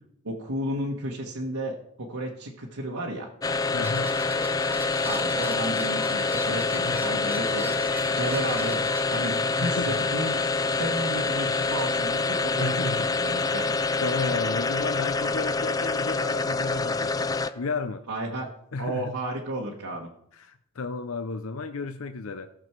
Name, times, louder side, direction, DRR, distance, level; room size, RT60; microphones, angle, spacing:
voice 1, 0.2-3.3 5.0-8.8 9.1-10.4 10.7-13.6 18.1-18.5 18.8-20.1, right 1 dB, 90° right, -2 dB, 1.5 m, -33 dB
sound 1, 3.4-17.7, left 3 dB, 15° left, 0.3 m, -26 dB
voice 2, 3.7-4.2 6.9-7.1 9.6-10.1 11.5-11.6 12.6-13.1 13.6-17.3 17.5-18.0 18.7-19.2 20.3-22.5, left 4 dB, 70° left, 9 dB, 0.6 m, -33 dB
sound 2, 3.8-9.0, equal, 10° right, 0.8 m, -40 dB
17.5 x 6.2 x 4.5 m, 0.73 s
head